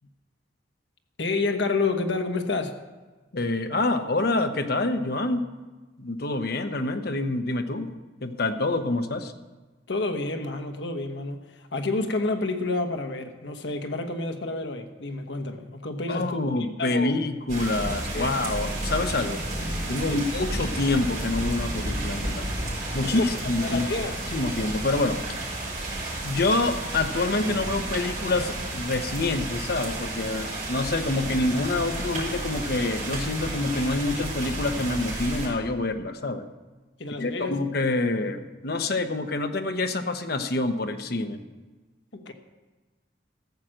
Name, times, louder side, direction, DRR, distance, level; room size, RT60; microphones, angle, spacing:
voice 1, 1.2-2.8 9.9-16.4 16.8-17.1 18.1-18.3 20.1-20.2 23.0-24.2 37.0-37.6 42.1-42.3, left 3 dB, 75° left, 6 dB, 1.1 m, -29 dB
voice 2, 3.3-5.5 6.0-7.9 8.2-9.3 16.1-19.4 19.9-22.5 22.9-23.9 24.3-25.2 26.2-36.5 37.2-41.4, left 2 dB, 55° left, 7 dB, 0.9 m, -27 dB
sound 1, 17.5-35.5, right 1 dB, 45° right, 5.0 m, -32 dB
14.5 x 6.4 x 7.6 m, 1.3 s
head